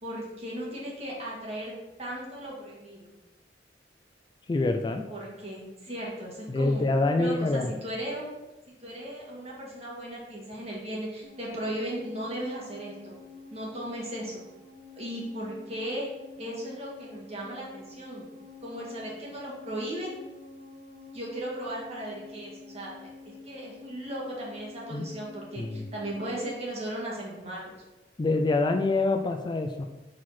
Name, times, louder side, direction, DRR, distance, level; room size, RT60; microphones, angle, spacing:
voice 1, 0.0-3.1 5.1-6.9 7.2-8.3 8.8-13.2 13.5-14.4 15.0-16.1 16.4-18.3 18.6-20.1 21.1-27.7, right 1 dB, 35° right, -4 dB, 1.9 m, -36 dB
voice 2, 4.5-5.0 6.5-7.7 24.9-25.1 25.6-25.9 28.2-29.9, left 2 dB, 25° left, 5 dB, 0.4 m, -26 dB
sound 1, 11.2-26.6, left 3 dB, 80° left, 1.8 m, -48 dB
4.7 x 4.3 x 5.8 m, 1.1 s
head